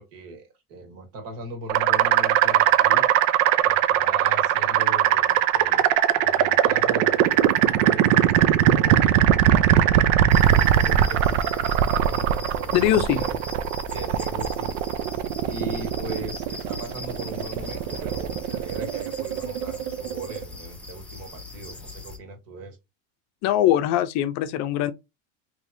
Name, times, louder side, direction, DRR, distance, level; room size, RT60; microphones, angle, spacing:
voice 1, 0.0-3.1 3.6-5.9 6.1-10.0 10.5-13.4 13.9-14.7 15.4-22.8, right 2 dB, 55° right, 1.5 m, -38 dB
sound 1, 1.7-20.4, right 11 dB, 75° right, 0.6 m, -21 dB
sound 2, 10.3-22.2, left 3 dB, 5° left, 0.6 m, -40 dB
voice 2, 12.7-13.2 23.4-24.9, left 12 dB, 45° left, 0.5 m, -21 dB
3.3 x 3.0 x 2.6 m
supercardioid pair, 140°, 39 cm